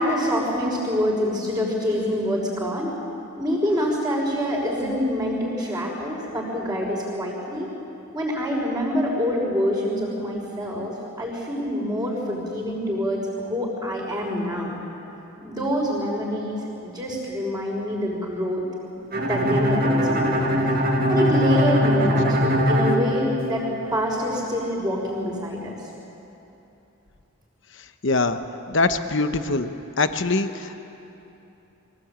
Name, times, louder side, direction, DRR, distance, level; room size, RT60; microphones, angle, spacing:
voice 1, 0.0-2.9 3.4-7.7 8.1-14.7 15.4-18.6 19.2-20.5 21.1-23.6 23.9-25.7, equal, 15° right, -4 dB, 5.3 m, -26 dB
Bowed string instrument, 19.1-23.9, equal, 40° right, 1.9 m, -21 dB
voice 2, 28.0-28.4 28.7-29.7 30.0-30.8, left 3 dB, 55° left, 9 dB, 1.0 m, -23 dB
24.0 x 17.5 x 9.0 m, 2.9 s
head